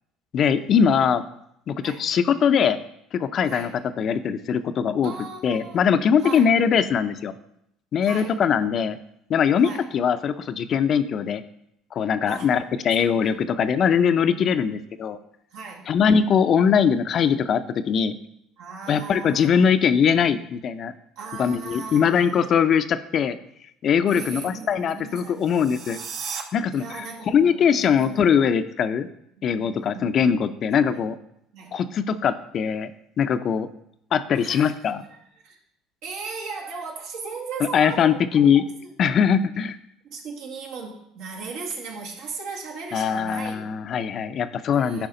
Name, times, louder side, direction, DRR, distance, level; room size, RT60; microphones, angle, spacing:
voice 1, 0.3-1.2 1.7-2.8 3.1-3.7 4.0-5.1 5.4-7.3 7.9-9.0 9.3-11.4 11.9-15.2 15.9-18.1 18.9-20.9 21.4-23.4 23.8-26.0 26.5-29.1 29.4-31.2 31.7-32.9 33.2-33.7 34.1-35.0 37.7-38.7 39.0-39.8 42.9-45.1, left 7 dB, 50° left, 11 dB, 0.5 m, -21 dB
voice 2, 5.0-5.8 6.2-6.5 8.0-8.4 9.6-9.9 12.3-12.5 13.1-13.4 15.5-15.9 18.6-19.7 21.2-22.6 24.1-25.7 26.7-28.4 29.5-30.4 30.8-31.0 31.5-31.7 34.3-34.7 35.1-35.2 35.4-35.6 36.0-38.9 40.1-43.7 44.7-45.1, right 4 dB, 75° right, 0 dB, 1.8 m, -37 dB
sound 1, 25.3-26.4, right 6 dB, 60° right, 1.0 m, -35 dB
10.5 x 4.9 x 3.9 m, 0.76 s
supercardioid pair, 90°, 0 cm